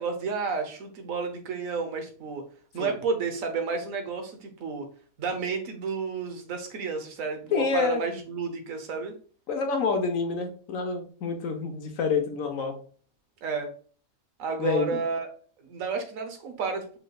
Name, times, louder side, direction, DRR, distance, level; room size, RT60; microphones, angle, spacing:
voice 1, 0.0-2.4 2.7-4.9 5.2-9.1 13.4-13.7 14.4-15.3 15.6-17.0, right 4 dB, 85° right, 6 dB, 1.3 m, -31 dB
voice 2, 7.5-8.0 9.5-12.8 14.6-15.0, left 5 dB, 80° left, 5 dB, 1.3 m, -27 dB
5.5 x 3.2 x 2.3 m, 0.43 s
omnidirectional pair, 1.4 m